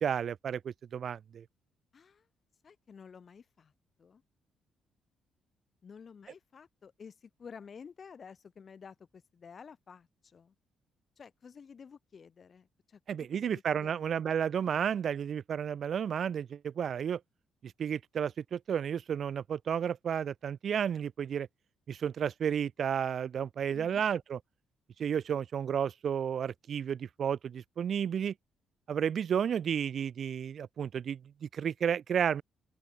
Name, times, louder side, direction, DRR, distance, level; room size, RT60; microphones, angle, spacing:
voice 1, 0.0-1.4 13.1-17.2 17.6-21.5 21.9-24.4 25.0-28.3 28.9-32.4, right 8 dB, 55° right, 0.3 m, -32 dB
voice 2, 1.9-2.3 2.6-3.7 4.0-4.2 5.8-10.5 11.2-13.0 13.3-14.1 23.7-24.1, left 6 dB, 45° left, 6.2 m, -51 dB
open air
cardioid pair, 90°, 0 cm